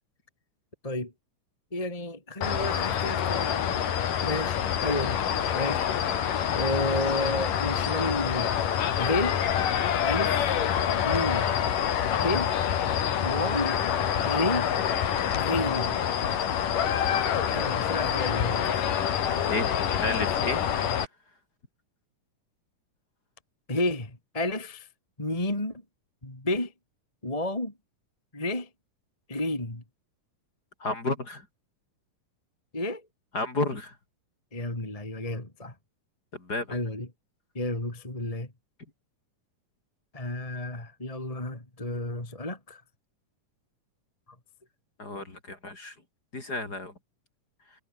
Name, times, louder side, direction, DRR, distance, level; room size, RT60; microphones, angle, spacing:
voice 1, 1.7-3.9 4.2-5.2 5.5-8.5 9.0-9.4 10.0-10.5 11.0-11.5 12.1-12.5 13.2-13.8 14.2-14.7 15.3-16.0 17.4-19.0 23.7-24.9 25.2-25.8 26.2-26.7 27.2-27.7 28.3-28.7 29.3-29.8 32.7-33.0 34.5-35.7 36.7-37.1 37.5-38.5 40.1-42.8, left 1 dB, 10° left, 3.1 m, -31 dB
sound 1, 2.4-21.0, left 9 dB, 75° left, 3.8 m, -26 dB
voice 2, 19.4-20.6 30.8-31.5 33.3-34.0 36.3-36.8 45.0-45.9 46.3-46.9, left 2 dB, 30° left, 4.3 m, -32 dB
omnidirectional pair, 3.8 m